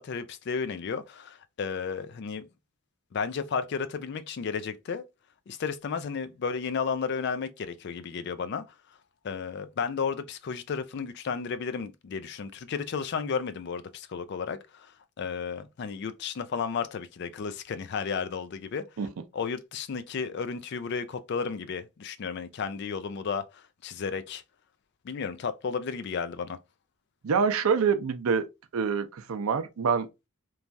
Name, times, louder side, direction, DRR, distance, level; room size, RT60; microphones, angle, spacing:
voice 1, 0.0-2.5 3.1-5.0 5.5-8.6 9.2-14.9 15.2-18.9 19.3-24.4 25.0-26.6, left 6 dB, 55° left, 0.3 m, -33 dB
voice 2, 27.2-28.5 28.7-30.3, right 6 dB, 90° right, 0.5 m, -26 dB
3.1 x 2.3 x 2.5 m
head